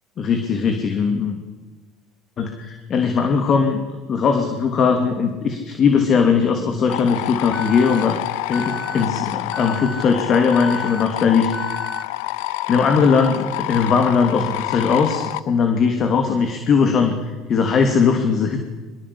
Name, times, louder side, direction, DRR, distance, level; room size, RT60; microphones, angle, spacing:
voice 1, 0.2-1.4 2.4-3.8 4.1-8.2 8.5-11.8 12.7-18.6, left 5 dB, 45° left, 5 dB, 3.0 m, -19 dB
sound 1, 6.9-15.4, left 17 dB, 80° left, 0.8 m, -28 dB
Alarm, 7.5-8.0 8.5-9.0 9.5-10.0 10.5-11.0 11.5-12.0, equal, 5° left, 2.4 m, -33 dB
24.0 x 21.0 x 8.7 m, 1.2 s
supercardioid pair, 100°, 0 cm